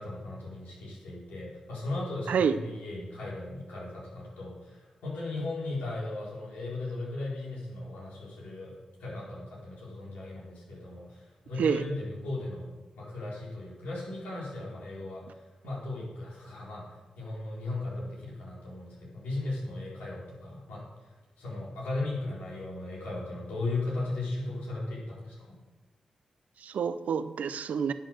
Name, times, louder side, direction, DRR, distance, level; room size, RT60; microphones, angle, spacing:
voice 1, 0.0-8.7 9.0-12.7 13.0-15.4 15.6-16.8 17.2-21.1 21.4-25.6, left 2 dB, 90° left, -6 dB, 4.3 m, -37 dB
voice 2, 26.6-27.9, right 7 dB, 80° right, 12 dB, 0.6 m, -28 dB
10.5 x 7.8 x 6.4 m, 1.2 s
supercardioid pair, 40°, 3 cm